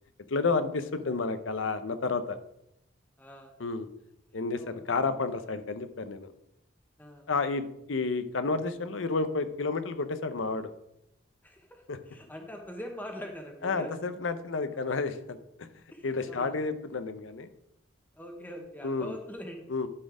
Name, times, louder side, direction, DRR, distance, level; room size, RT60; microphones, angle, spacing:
voice 1, 0.3-2.4 3.6-3.9 4.3-6.3 7.3-10.7 11.9-12.0 13.6-15.7 16.0-17.5 18.8-19.2 19.7-19.9, left 4 dB, 85° left, 11 dB, 0.7 m, -31 dB
voice 2, 3.2-3.5 4.6-4.8 7.0-7.3 11.4-13.9 14.7-14.8 15.9-16.5 18.2-19.6, equal, 10° left, 2 dB, 0.9 m, -43 dB
11.5 x 4.3 x 4.9 m, 0.81 s
head